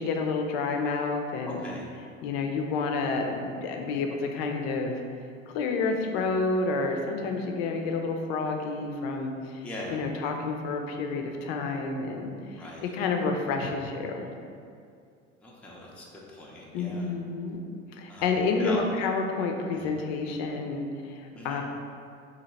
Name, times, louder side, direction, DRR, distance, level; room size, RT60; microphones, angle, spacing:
voice 1, 0.0-1.6 2.2-5.0 5.5-14.3 16.7-17.6 18.0-21.6, left 4 dB, 55° left, 3 dB, 0.5 m, -29 dB
voice 2, 1.4-1.9 6.1-6.2 9.6-10.0 12.6-12.9 15.4-17.1 18.1-18.8 19.7-20.0 21.3-21.6, left 1 dB, 5° left, -5 dB, 0.5 m, -41 dB
2.9 x 2.7 x 4.0 m, 2.3 s
figure-of-eight pair, 70°, 37 cm